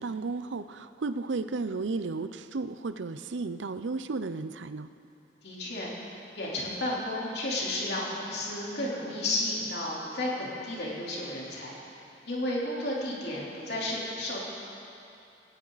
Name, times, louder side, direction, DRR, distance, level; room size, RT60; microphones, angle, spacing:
voice 1, 0.0-4.9, right 3 dB, 85° right, 12 dB, 0.6 m, -33 dB
voice 2, 5.4-11.7 12.2-14.4, left 1 dB, 60° left, -5 dB, 3.6 m, -32 dB
18.5 x 17.0 x 4.1 m, 2.7 s
head